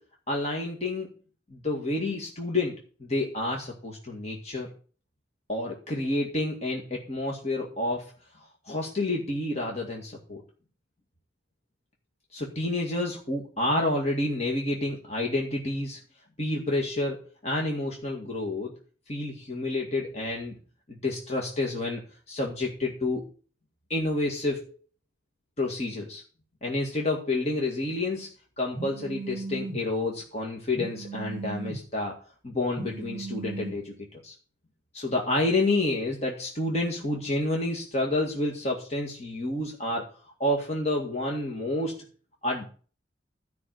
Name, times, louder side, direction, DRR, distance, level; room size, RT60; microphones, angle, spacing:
voice 1, 0.3-1.1 1.5-4.7 5.5-8.1 8.7-10.4 12.3-16.0 16.4-18.7 19.1-20.6 20.9-22.0 22.3-23.3 23.9-24.6 25.6-26.2 26.6-28.3 28.6-32.2 32.4-34.0 34.2-34.3 34.9-40.1 40.4-42.0 42.4-42.7, left 2 dB, 35° left, -1 dB, 2.0 m, -29 dB
Telephone, 28.7-29.8 30.7-31.8 32.7-33.7, right 3 dB, ahead, 5.2 m, -36 dB
13.5 x 5.8 x 7.9 m, 0.40 s
head